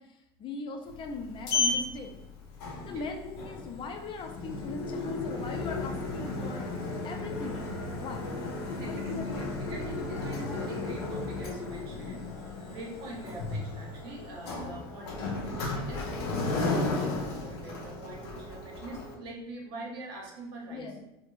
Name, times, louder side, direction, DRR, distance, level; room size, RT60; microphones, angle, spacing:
voice 1, 0.0-2.1 2.8-8.3 8.8-9.6 20.7-21.0, left 4 dB, 40° left, 4 dB, 0.5 m, -40 dB
Sliding door, 0.9-19.1, left 3 dB, 85° left, 0.6 m, -34 dB
voice 2, 8.7-9.3 9.7-20.9, right 1 dB, 80° right, -1 dB, 0.8 m, -44 dB
2.5 x 2.1 x 3.0 m, 0.89 s
supercardioid pair, 95°, 13 cm